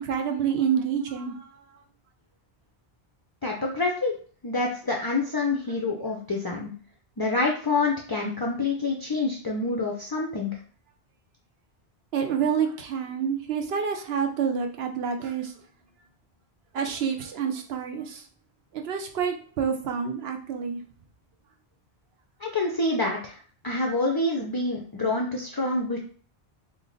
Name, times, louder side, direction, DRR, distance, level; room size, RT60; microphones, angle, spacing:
voice 1, 0.0-1.5 12.1-15.5 16.7-18.2 18.7-20.8, right 7 dB, 70° right, 4 dB, 0.9 m, -28 dB
voice 2, 3.4-4.1 4.4-6.7 7.2-10.5 22.4-23.4 23.6-26.0, left 2 dB, 35° left, 0 dB, 0.3 m, -27 dB
3.3 x 2.3 x 3.8 m, 0.42 s
omnidirectional pair, 1.1 m